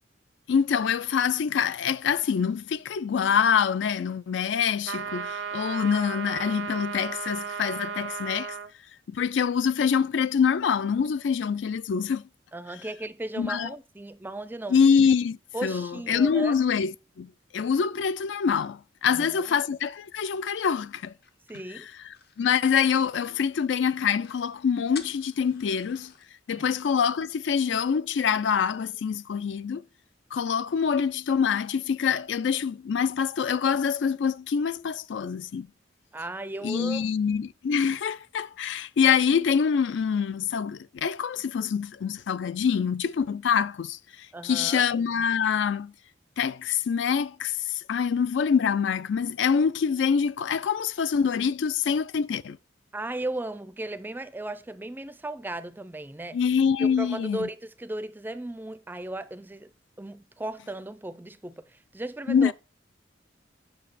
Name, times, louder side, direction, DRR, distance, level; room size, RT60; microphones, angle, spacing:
voice 1, 0.5-8.6 9.1-12.2 13.4-13.7 14.7-16.9 17.2-21.1 21.7-26.1 26.5-29.8 30.3-35.7 36.6-45.9 46.4-52.6 56.3-57.5 62.3-62.5, left 6 dB, 75° left, 0.4 m, -25 dB
sound 1, 4.8-8.7, right 6 dB, 75° right, 0.6 m, -35 dB
voice 2, 12.5-14.8 15.5-16.6 19.1-19.6 21.5-21.9 26.5-26.7 36.1-37.1 44.3-44.8 52.9-56.4 56.8-59.7 60.0-62.5, right 2 dB, 10° right, 0.4 m, -36 dB
sound 2, 21.2-23.6 23.9-24.0 24.2-24.5 24.9-26.3, left 7 dB, 60° left, 0.8 m, -48 dB
8.7 x 5.8 x 4.1 m
head